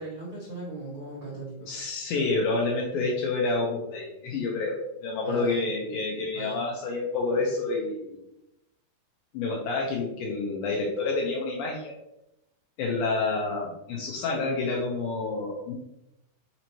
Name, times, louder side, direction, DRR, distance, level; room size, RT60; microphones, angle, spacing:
voice 1, 0.0-1.9 5.2-5.6 6.3-6.6, right 1 dB, 90° right, -9 dB, 1.1 m, -38 dB
voice 2, 1.7-8.2 9.3-11.9 12.8-15.7, left 3 dB, 80° left, -2 dB, 2.1 m, -28 dB
6.1 x 2.8 x 3.0 m, 0.88 s
omnidirectional pair, 4.7 m